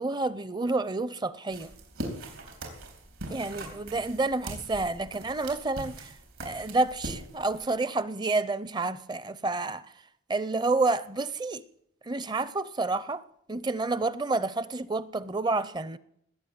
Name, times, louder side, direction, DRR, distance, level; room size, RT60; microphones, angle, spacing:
voice 1, 0.0-1.7 3.3-6.1 6.4-9.9 10.3-11.6 12.0-16.0, right 3 dB, 20° right, 0.5 m, -29 dB
sound 1, 1.5-7.7, right 1 dB, 80° right, 4.0 m, -41 dB
19.5 x 8.2 x 8.7 m
head